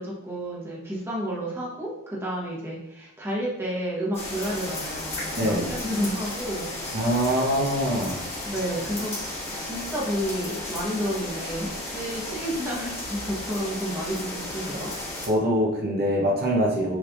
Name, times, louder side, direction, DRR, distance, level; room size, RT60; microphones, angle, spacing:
voice 1, 0.0-6.7 8.4-14.9, equal, 10° right, -6 dB, 1.1 m, -31 dB
sound 1, 4.1-15.3, left 1 dB, 30° left, 1.5 m, -34 dB
voice 2, 5.4-5.7 6.9-8.2 8.4-8.6 15.2-17.0, equal, 45° right, -3 dB, 0.9 m, -24 dB
6.2 x 3.3 x 2.5 m, 0.86 s
head